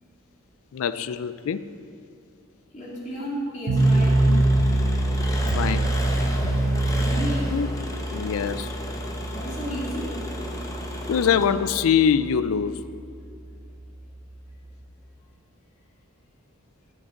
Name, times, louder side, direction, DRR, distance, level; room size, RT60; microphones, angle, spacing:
voice 1, 0.7-1.7 4.3-4.4 5.6-6.0 7.5-7.7 8.1-8.7 11.1-12.8, left 7 dB, 70° left, 14 dB, 0.3 m, -23 dB
voice 2, 2.7-4.3 6.9-7.6 9.3-10.2, equal, 35° left, -7 dB, 2.5 m, -32 dB
sound 1, 3.7-14.8, right 2 dB, 80° right, 0.8 m, -25 dB
Engine, 3.8-11.9, left 1 dB, 15° left, 0.8 m, -35 dB
12.5 x 6.5 x 3.8 m, 2.5 s
head